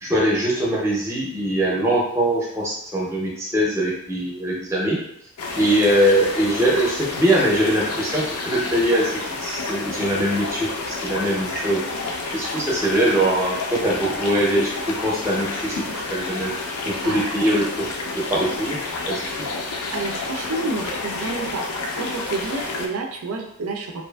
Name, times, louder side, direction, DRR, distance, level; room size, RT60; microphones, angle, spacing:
voice 1, 0.0-5.0 5.6-9.1 9.4-11.8 12.3-16.5 16.8-17.9 18.1-18.8 19.1-19.3, right 1 dB, 10° right, -4 dB, 0.5 m, -22 dB
sound 1, 5.4-22.9, left 3 dB, 90° left, 0.5 m, -29 dB
voice 2, 19.9-21.6 22.0-24.0, right 3 dB, 80° right, 3 dB, 0.4 m, -29 dB
2.6 x 2.4 x 2.2 m, 0.75 s
head